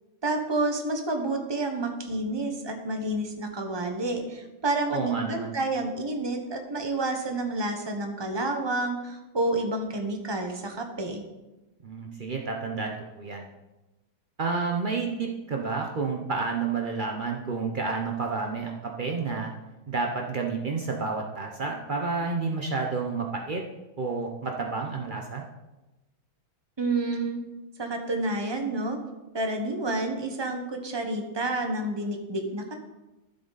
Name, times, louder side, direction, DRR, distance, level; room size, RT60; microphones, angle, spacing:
voice 1, 0.2-11.2 26.8-27.4 27.8-29.0 29.3-32.8, right 2 dB, 20° right, 4 dB, 0.7 m, -29 dB
voice 2, 4.9-5.6 11.8-13.5 14.4-19.5 19.9-23.6 24.0-25.4, right 4 dB, 75° right, 1 dB, 0.4 m, -30 dB
13.0 x 7.8 x 4.0 m, 1.1 s
omnidirectional pair, 2.2 m